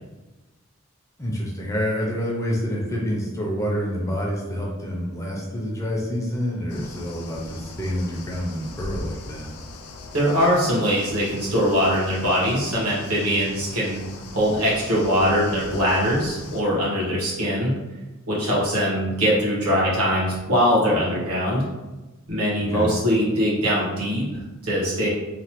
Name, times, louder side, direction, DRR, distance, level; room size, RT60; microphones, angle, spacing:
voice 1, 1.2-9.5 22.7-22.9, equal, 15° left, -3 dB, 0.4 m, -27 dB
sound 1, 6.7-16.6, left 2 dB, 90° left, 0.4 m, -40 dB
voice 2, 10.1-14.0 14.3-17.7 18.3-21.6 22.3-25.1, equal, 75° right, -6 dB, 1.2 m, -22 dB
3.1 x 2.1 x 2.9 m, 1.1 s
head